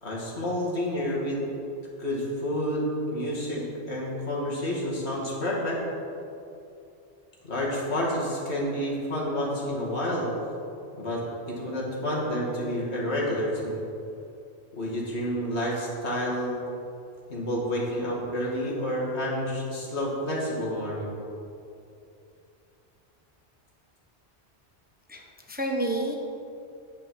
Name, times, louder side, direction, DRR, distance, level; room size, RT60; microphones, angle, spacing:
voice 1, 0.0-1.4 2.0-5.8 7.4-10.3 11.0-13.8 14.7-16.6 17.3-21.1, equal, 75° left, -4 dB, 2.5 m, -29 dB
voice 2, 25.1-26.2, right 1 dB, 10° right, 0 dB, 0.9 m, -30 dB
9.2 x 8.9 x 5.4 m, 2.6 s
omnidirectional pair, 1.1 m